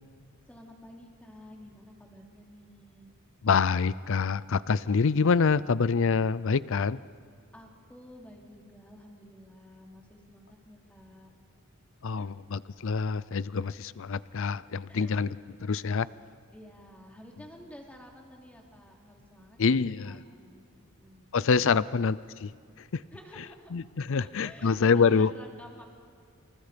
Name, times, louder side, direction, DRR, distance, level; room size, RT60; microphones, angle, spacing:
voice 1, 0.5-3.1 7.5-11.3 12.2-12.3 14.9-15.2 16.5-21.3 21.7-21.9 23.1-23.7 24.2-25.9, equal, 5° left, 0 dB, 3.3 m, -51 dB
voice 2, 3.4-7.0 12.0-16.1 19.6-20.2 21.3-22.5 22.9-23.0 23.7-25.3, left 5 dB, 60° left, 18 dB, 0.5 m, -26 dB
28.0 x 27.5 x 5.2 m, 2.2 s
head